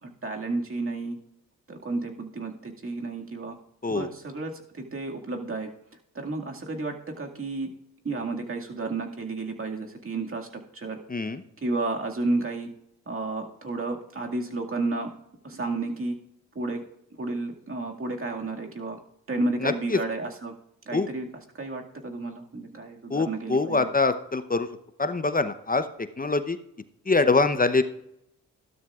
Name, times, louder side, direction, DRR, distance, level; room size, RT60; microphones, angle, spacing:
voice 1, 0.0-1.2 1.7-3.6 3.9-5.7 6.1-7.7 8.0-11.0 11.6-12.7 13.1-15.1 15.4-16.2 16.6-16.8 17.2-19.0 19.3-20.5 20.9-21.3 21.6-23.9, right 2 dB, 35° right, 1 dB, 2.1 m, -32 dB
voice 2, 11.1-11.4 19.6-20.0 20.9-21.1 23.1-24.7 25.0-25.9 26.2-26.6 27.1-27.8, left 3 dB, 25° left, 11 dB, 0.8 m, -24 dB
14.0 x 12.0 x 2.4 m, 0.78 s
supercardioid pair, 45°, 36 cm